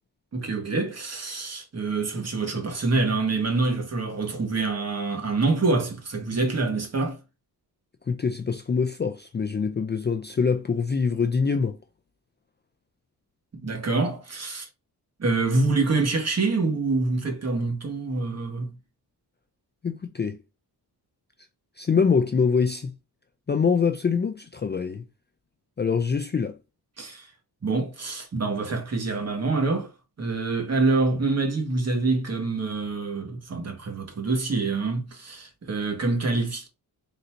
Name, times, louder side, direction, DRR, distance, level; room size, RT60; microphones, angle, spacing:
voice 1, 0.3-7.2 13.6-14.7 15.2-18.8 27.0-27.3 27.6-29.9 30.2-36.7, right 3 dB, 40° right, 1.4 m, -26 dB
voice 2, 8.1-11.8 19.8-20.4 21.8-22.9 23.5-25.0 25.8-26.6, left 5 dB, 30° left, 0.4 m, -24 dB
3.9 x 2.7 x 4.4 m
wide cardioid pair, 145°, 39 cm